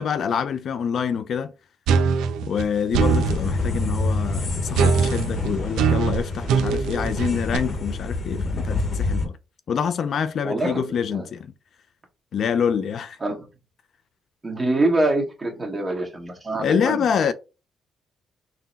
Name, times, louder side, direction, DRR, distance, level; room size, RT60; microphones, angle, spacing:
voice 1, 0.0-1.5 2.4-9.4 9.7-11.5 12.3-13.2 16.6-17.3, left 7 dB, 60° left, 0.4 m, -26 dB
sound 1, 1.9-3.4 4.7-7.6, right 6 dB, 90° right, 0.4 m, -22 dB
sound 2, 3.0-9.3, left 3 dB, 45° left, 1.0 m, -27 dB
voice 2, 10.4-10.8 11.1-11.2 13.2-13.4 14.4-17.0, right 2 dB, 25° right, 1.4 m, -24 dB
3.8 x 2.1 x 3.9 m
cardioid pair, 90°, 0 cm